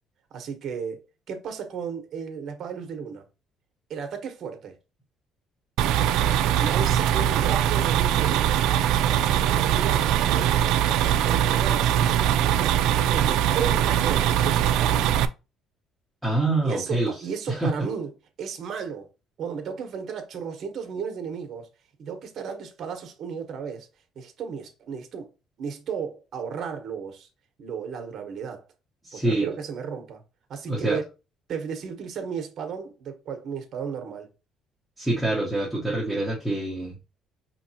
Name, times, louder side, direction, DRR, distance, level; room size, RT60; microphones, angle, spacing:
voice 1, 0.3-3.3 3.9-4.8 6.6-10.9 11.2-12.8 13.1-15.1 16.6-18.1 18.4-19.1 19.4-21.7 22.0-23.9 24.1-25.3 25.6-27.3 27.6-28.7 29.1-30.2 30.5-31.0 31.5-34.3, right 6 dB, 50° right, 1.0 m, -34 dB
sound 1, 5.8-15.3, right 10 dB, 80° right, 0.3 m, -22 dB
voice 2, 16.2-17.1 17.5-17.7 29.0-29.5 30.7-31.0 35.0-36.9, right 2 dB, ahead, 1.0 m, -25 dB
5.1 x 2.9 x 2.8 m
cardioid pair, 150°, 0 cm